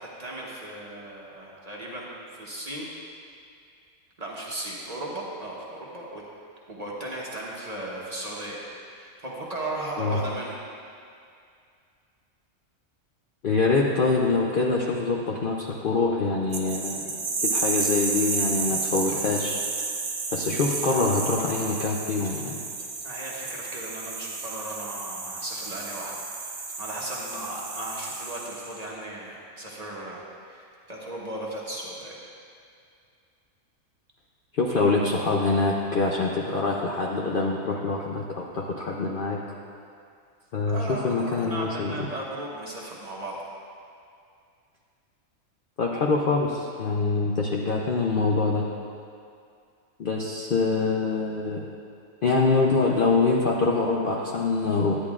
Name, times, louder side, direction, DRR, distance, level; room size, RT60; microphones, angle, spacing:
voice 1, 0.2-2.1 2.3-2.9 4.2-6.2 6.7-10.6 23.0-30.2 30.5-32.1 40.7-43.4, right 1 dB, 30° right, -4 dB, 1.0 m, -36 dB
voice 2, 13.4-19.6 20.3-22.6 34.5-39.4 40.5-42.1 45.8-48.7 50.0-51.7 52.2-55.0, left 3 dB, 55° left, -2 dB, 0.6 m, -25 dB
sound 1, 16.5-28.8, right 4 dB, 65° right, 1.2 m, -31 dB
10.5 x 9.7 x 2.4 m, 2.4 s
omnidirectional pair, 1.4 m